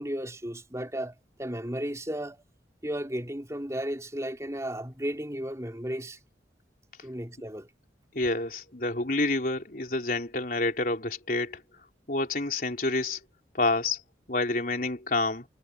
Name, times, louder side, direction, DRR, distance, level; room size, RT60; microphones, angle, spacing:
voice 1, 0.0-2.4 2.8-6.2 7.0-7.7, equal, 15° right, 3.8 m, -34 dB
voice 2, 8.1-11.6 12.1-13.2 13.5-14.0 14.3-15.4, left 2 dB, 50° left, 4.0 m, -28 dB
head